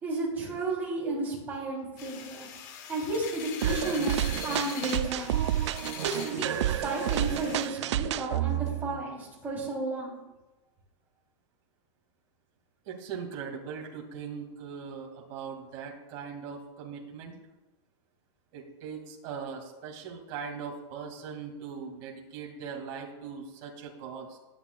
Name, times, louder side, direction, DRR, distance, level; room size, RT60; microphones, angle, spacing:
voice 1, 0.0-2.5 2.9-5.4 6.0-10.2, right 2 dB, 10° right, -4 dB, 3.2 m, -33 dB
sound 1, 2.0-7.7, left 8 dB, 40° left, 1.0 m, -43 dB
sound 2, 3.6-9.0, right 12 dB, 70° right, 0.5 m, -30 dB
voice 2, 12.8-17.3 18.5-24.4, right 6 dB, 35° right, 0 dB, 2.2 m, -40 dB
19.5 x 8.9 x 2.3 m, 1.1 s
supercardioid pair, 170°, 16 cm